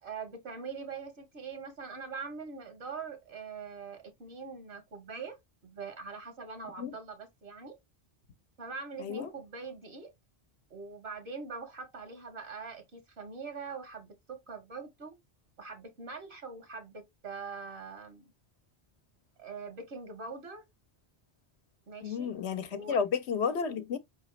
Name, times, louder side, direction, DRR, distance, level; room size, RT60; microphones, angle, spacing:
voice 1, 0.0-5.4 5.6-7.7 8.6-10.1 10.7-15.2 15.6-18.3 19.4-20.6 21.9-22.3 22.7-23.0, right 4 dB, 75° right, 1.3 m, -43 dB
voice 2, 9.0-9.3 22.0-24.0, left 6 dB, 80° left, 1.0 m, -32 dB
4.9 x 3.0 x 3.1 m
omnidirectional pair, 1.1 m